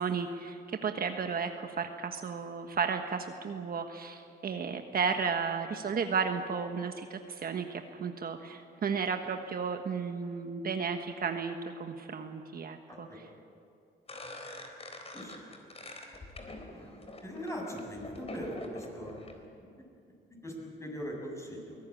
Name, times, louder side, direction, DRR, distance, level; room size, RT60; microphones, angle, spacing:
voice 1, 0.0-13.3, right 5 dB, 50° right, 5 dB, 1.3 m, -33 dB
sound 1, 14.1-19.3, left 1 dB, 30° left, 3.9 m, -45 dB
voice 2, 16.5-19.7 20.4-21.8, equal, 15° left, 0 dB, 7.2 m, -41 dB
23.0 x 18.0 x 8.7 m, 2.5 s
cardioid pair, 90°, 20 cm